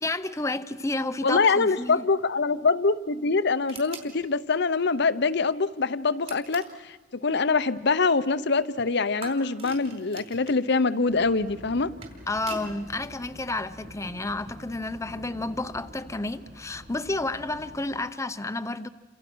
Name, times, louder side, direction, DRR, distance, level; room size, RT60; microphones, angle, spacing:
voice 1, 0.0-2.0 12.3-18.9, left 2 dB, 15° left, 0.8 m, -31 dB
voice 2, 1.2-11.9, left 4 dB, 65° left, 0.9 m, -24 dB
sound 1, 3.7-4.1 6.2-6.8 9.2-10.6 11.7-12.7, right 4 dB, 35° right, 4.3 m, -42 dB
sound 2, 11.1-17.9, equal, 75° right, 5.8 m, -47 dB
29.5 x 26.5 x 6.3 m
head